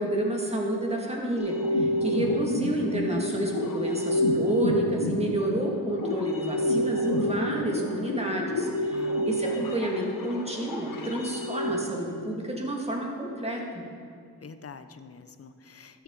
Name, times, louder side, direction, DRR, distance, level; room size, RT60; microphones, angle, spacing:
voice 1, 0.0-13.8, right 1 dB, 15° right, -1 dB, 2.2 m, -30 dB
sound 1, 1.4-11.8, equal, 60° left, 1.2 m, -29 dB
voice 2, 8.9-9.6 14.4-16.0, left 5 dB, 40° left, 10 dB, 0.7 m, -46 dB
13.0 x 7.5 x 3.9 m, 2.2 s
cardioid pair, 55°, 38 cm